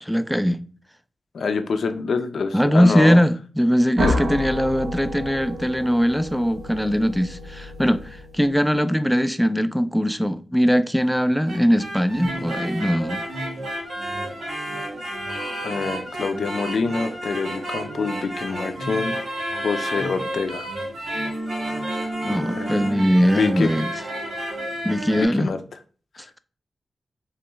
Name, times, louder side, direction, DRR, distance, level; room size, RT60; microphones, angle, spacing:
voice 1, 0.0-0.6 2.5-13.2 22.2-23.9 24.8-25.5, equal, ahead, 0.3 m, -20 dB
voice 2, 1.3-3.2 4.0-4.3 15.6-19.1 19.5-20.7 22.5-22.9 23.3-23.7 25.2-25.6, left 4 dB, 80° left, 0.5 m, -26 dB
sound 1, 4.0-8.7, left 1 dB, 65° right, 0.8 m, -30 dB
sound 2, 11.3-25.2, right 1 dB, 90° right, 1.5 m, -30 dB
3.4 x 3.2 x 3.0 m
cardioid pair, 75°, 0 cm